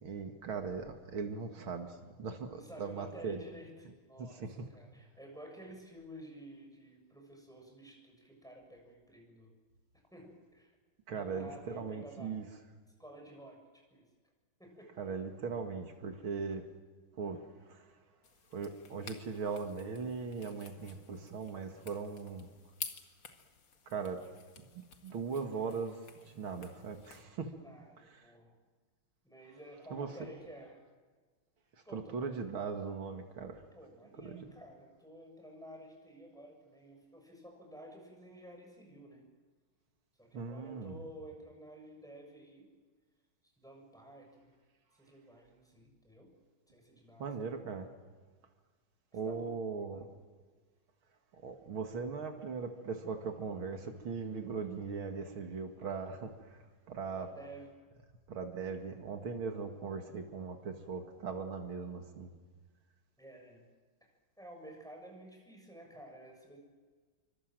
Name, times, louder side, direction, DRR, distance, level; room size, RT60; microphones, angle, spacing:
voice 1, 0.0-3.4 4.2-4.7 11.1-12.5 15.0-16.7 17.2-17.9 18.5-22.5 23.9-24.2 24.6-27.5 28.2-28.3 29.9-30.3 31.9-33.6 34.2-34.4 40.3-41.0 47.2-47.9 49.1-50.1 51.4-57.3 58.3-62.3, right 5 dB, 85° right, 5 dB, 2.9 m, -39 dB
voice 2, 2.5-9.5 10.1-10.7 11.1-12.5 13.0-14.1 14.6-14.9 27.5-28.5 29.2-30.8 31.8-32.2 33.7-39.3 40.2-42.7 43.6-44.5 44.9-46.3 46.7-47.6 49.1-49.5 49.9-50.1 57.1-57.7 63.2-63.6 64.0-64.1 64.4-66.6, right 1 dB, ahead, 1 dB, 6.8 m, -52 dB
sound 1, 18.2-27.2, left 6 dB, 65° left, 2.6 m, -51 dB
27.0 x 25.0 x 7.7 m, 1.5 s
omnidirectional pair, 2.2 m